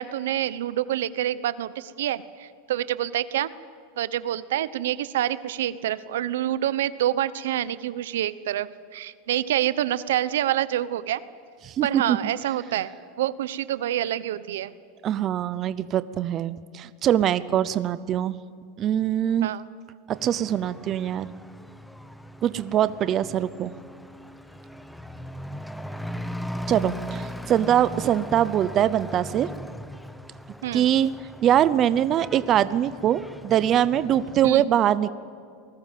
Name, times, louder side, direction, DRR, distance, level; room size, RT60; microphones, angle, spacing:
voice 1, 0.0-3.5 4.0-11.2 11.8-14.7 19.4-19.6 30.6-30.9 34.4-34.6, right 12 dB, 90° right, 16 dB, 1.0 m, -27 dB
voice 2, 11.7-12.2 15.0-18.4 18.8-19.5 20.1-21.3 22.4-23.7 26.7-29.5 30.7-31.1 31.4-35.1, right 10 dB, 30° right, 15 dB, 0.7 m, -23 dB
Truck / Accelerating revving vroom, 20.1-34.6, equal, ahead, 0.8 m, -39 dB
28.0 x 20.0 x 7.6 m, 2.2 s
supercardioid pair, 155°, 0 cm